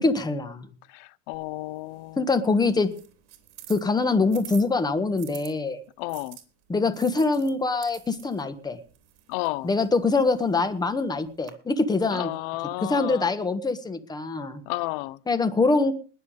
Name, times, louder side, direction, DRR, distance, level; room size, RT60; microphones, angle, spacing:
voice 1, 0.0-0.7 2.2-2.9 3.7-5.8 6.7-8.8 9.6-12.3 12.8-14.6 15.3-15.9, left 3 dB, 10° left, 1.4 m, -24 dB
voice 2, 0.9-2.2 6.0-6.4 9.3-9.7 12.1-13.3 14.7-15.2, left 20 dB, 55° left, 0.6 m, -32 dB
sound 1, 1.3-5.5 6.1-11.5, right 13 dB, 45° right, 3.3 m, -49 dB
20.5 x 7.0 x 5.2 m
supercardioid pair, 115°, 36 cm